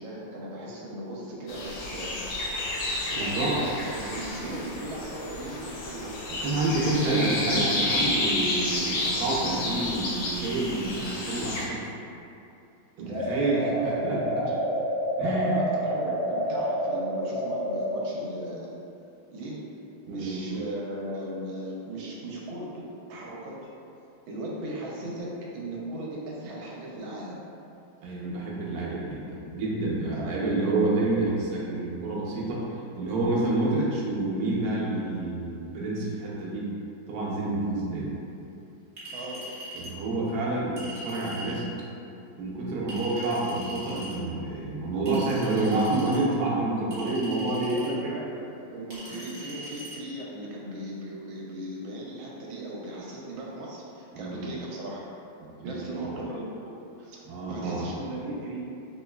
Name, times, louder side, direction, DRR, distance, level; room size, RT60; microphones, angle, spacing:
voice 1, 0.0-2.2 3.2-6.1 7.0-7.3 13.0-14.5 15.2-18.7 19.3-19.7 20.1-23.6 24.3-27.4 30.1-30.8 39.1-39.4 45.7-45.9 47.5-48.4 48.7-55.1 55.6-57.2 57.5-58.6, right 1 dB, 85° right, -4 dB, 1.4 m, -38 dB
sound 1, 1.5-11.6, left 2 dB, 80° left, 1.3 m, -31 dB
voice 2, 3.1-3.6 6.4-11.8 13.0-14.2 15.2-15.6 20.1-20.4 28.0-32.6 33.0-36.7 37.1-38.1 39.7-41.7 42.4-47.9 49.1-49.2 54.1-54.4 55.4-56.1 57.3-57.8, right 2 dB, 65° right, -5 dB, 1.1 m, -28 dB
sound 2, 13.1-18.0, equal, 60° left, 0.5 m, -28 dB
Chink clink, 39.0-39.9 40.8-41.6 42.9-44.1 45.1-46.2 46.9-47.9 48.9-50.0, right 1 dB, 25° right, 0.7 m, -41 dB
3.8 x 3.0 x 2.2 m, 2.7 s
omnidirectional pair, 2.1 m